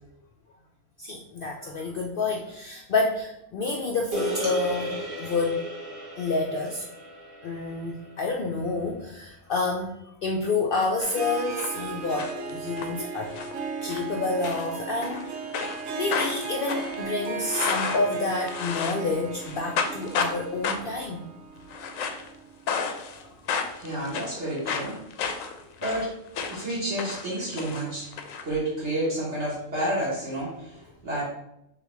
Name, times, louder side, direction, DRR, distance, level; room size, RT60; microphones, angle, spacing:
voice 1, 1.0-5.7 6.2-6.8 7.4-13.3 13.8-15.3 15.9-21.3 23.2-23.4, left 3 dB, 65° left, 1 dB, 0.5 m, -29 dB
sound 1, 4.1-8.6, right 1 dB, 40° right, 1.2 m, -36 dB
sound 2, 11.0-11.7 12.0-12.9 13.3-13.6 13.9-14.1 14.4-15.2 15.5-19.1 19.4-20.4 20.6-21.0 21.6-22.3 22.7-23.2 23.5-26.7 27.0-28.4, left 6 dB, 85° left, 1.0 m, -31 dB
Harp, 11.1-22.9, right 4 dB, 85° right, 1.1 m, -36 dB
voice 2, 23.8-25.0 25.3-26.1 26.5-28.1 28.4-31.2, right 1 dB, 60° right, -7 dB, 1.6 m, -30 dB
6.6 x 2.3 x 3.1 m, 0.81 s
omnidirectional pair, 1.4 m